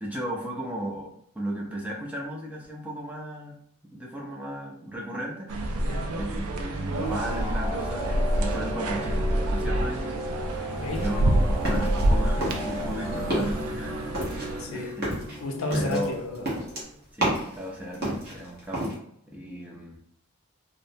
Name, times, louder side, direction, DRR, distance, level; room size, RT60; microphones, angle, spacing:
voice 1, 0.0-3.6 3.9-5.5 6.1-10.7 11.0-15.1 15.7-16.1 17.1-19.0 19.3-20.0, right 1 dB, 5° right, -2 dB, 0.4 m, -35 dB
sound 1, 5.5-14.7, right 1 dB, 80° right, 0.4 m, -27 dB
voice 2, 5.8-6.1 10.7-11.0 14.6-15.0 15.4-16.4, left 2 dB, 65° left, 3 dB, 0.5 m, -31 dB
sound 2, 7.0-16.8, equal, 15° left, 0.8 m, -36 dB
sound 3, 10.9-12.1 12.4-12.9 13.2-13.6 14.1-17.6 17.9-18.9, right 1 dB, 45° right, 0.9 m, -30 dB
2.6 x 2.1 x 2.7 m, 0.71 s
head